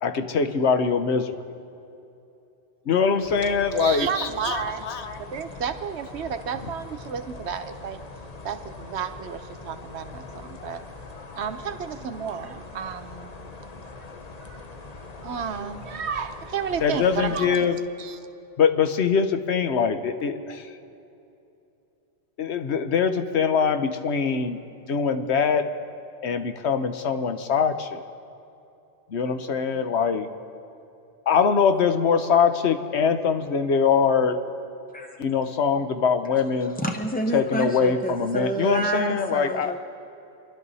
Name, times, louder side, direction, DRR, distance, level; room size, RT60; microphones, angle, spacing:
voice 1, 0.0-1.4 2.9-5.2 16.8-17.8 18.6-20.7 22.4-24.6 24.9-25.7 26.2-28.0 29.1-30.3 31.3-34.4 35.2-36.8 37.3-39.8, left 6 dB, 65° left, 8 dB, 1.1 m, -23 dB
sound 1, 3.2-17.6, left 3 dB, 35° left, 0.9 m, -42 dB
voice 2, 3.8-4.8 5.3-8.0 8.4-10.8 11.4-13.5 14.4-14.6 15.2-17.7 18.0-18.2, right 7 dB, 65° right, 8 dB, 1.1 m, -32 dB
voice 3, 36.8-39.8, right 1 dB, 10° left, 2 dB, 0.4 m, -29 dB
27.0 x 11.5 x 4.1 m, 2.7 s
omnidirectional pair, 1.2 m